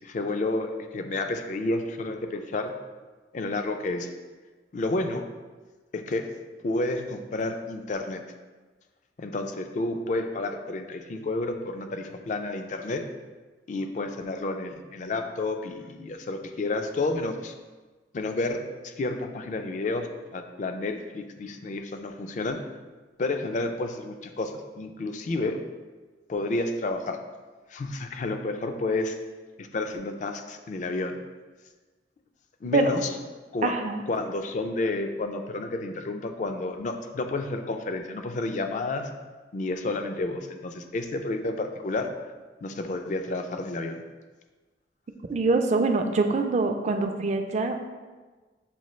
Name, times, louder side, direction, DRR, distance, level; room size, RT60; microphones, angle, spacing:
voice 1, 0.0-2.7 3.3-4.1 4.7-5.2 5.9-6.3 6.6-8.2 9.2-13.1 13.7-17.5 18.1-20.1 20.3-22.6 23.2-25.6 26.3-27.2 27.7-29.2 29.6-31.2 32.6-33.1 33.5-33.7 34.1-39.1 39.5-42.1 42.6-44.0, left 2 dB, 45° left, 6 dB, 0.4 m, -30 dB
voice 2, 33.6-34.0 45.3-47.9, right 3 dB, 40° right, 5 dB, 0.3 m, -24 dB
7.0 x 2.4 x 3.0 m, 1.3 s
head